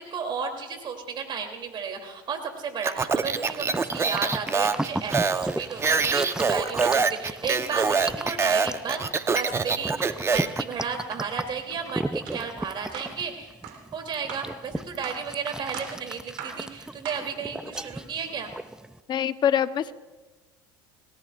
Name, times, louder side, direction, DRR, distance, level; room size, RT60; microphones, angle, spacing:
voice 1, 0.0-9.0 9.3-13.5 13.9-18.5, right 6 dB, 45° right, 4 dB, 3.1 m, -33 dB
Speech, 2.8-10.6, right 4 dB, 25° right, 0.9 m, -25 dB
sound 1, 3.2-19.0, right 1 dB, 5° right, 0.5 m, -35 dB
sound 2, 12.3-12.4 12.9-13.2 13.6-13.8 14.3-14.5 15.0-15.3 15.7-16.0 16.4-16.6 17.1-17.3, right 8 dB, 75° right, 3.6 m, -39 dB
voice 2, 19.1-19.9, left 9 dB, 40° left, 11 dB, 0.9 m, -24 dB
28.0 x 18.0 x 2.5 m, 1.2 s
hypercardioid pair, 85°, 12 cm